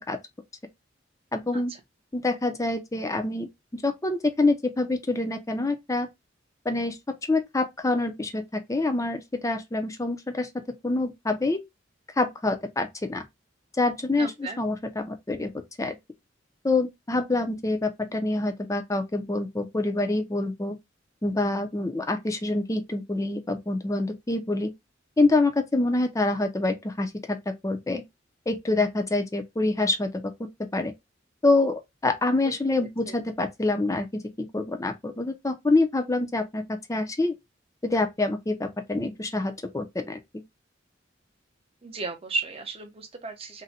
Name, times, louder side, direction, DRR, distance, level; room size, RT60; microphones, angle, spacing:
voice 1, 1.3-1.7 2.1-6.1 6.7-11.6 12.2-13.2 13.8-15.5 15.8-16.0 16.6-20.7 21.2-24.7 25.2-28.0 28.5-30.9 31.4-36.6 36.9-37.3 37.8-40.2, left 2 dB, 15° left, 0.5 m, -26 dB
voice 2, 14.2-14.6 32.4-32.5 41.8-43.6, right 3 dB, 30° right, 0.6 m, -34 dB
2.6 x 2.1 x 4.0 m
head